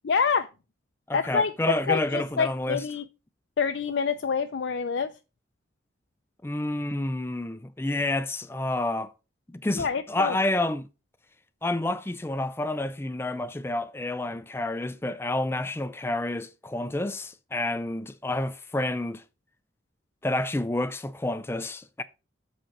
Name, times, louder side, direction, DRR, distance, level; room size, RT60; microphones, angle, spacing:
voice 1, 0.0-0.5 1.1-1.5 1.9-3.0 3.6-5.1 9.8-10.4, left 6 dB, 70° left, 0.5 m, -26 dB
voice 2, 1.1-2.8 6.4-9.1 9.6-10.9 11.6-19.2 20.2-22.0, left 2 dB, 10° left, 0.4 m, -29 dB
7.8 x 4.3 x 5.8 m
head